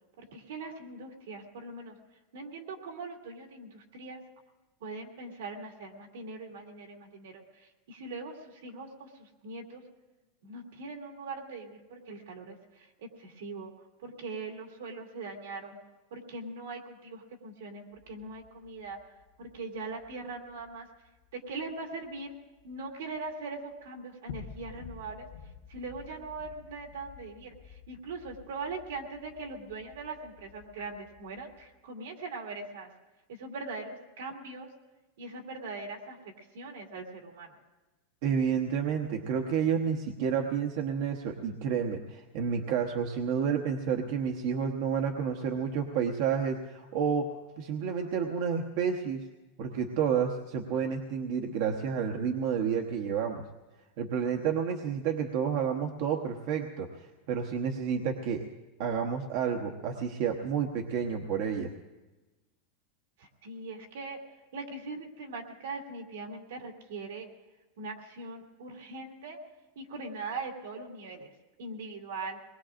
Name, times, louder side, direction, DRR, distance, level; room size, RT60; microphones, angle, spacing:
voice 1, 0.2-2.0 2.3-4.2 4.8-9.8 10.4-13.7 14.0-15.8 16.1-19.0 19.4-20.9 21.3-22.3 22.6-25.3 25.7-32.9 33.3-34.7 35.2-37.6 63.2-64.2 64.5-67.3 67.8-69.4 69.8-71.3 71.6-72.4, right 3 dB, 85° right, 1 dB, 2.5 m, -41 dB
sound 1, 17.9-23.4 23.7-23.9 24.3-31.7, left 6 dB, 70° left, 1.6 m, -52 dB
voice 2, 38.2-49.2 49.6-53.4 54.0-58.4 58.8-61.7, right 7 dB, 55° right, 3 dB, 1.0 m, -30 dB
23.0 x 20.5 x 2.5 m, 1.1 s
supercardioid pair, 145°, 0 cm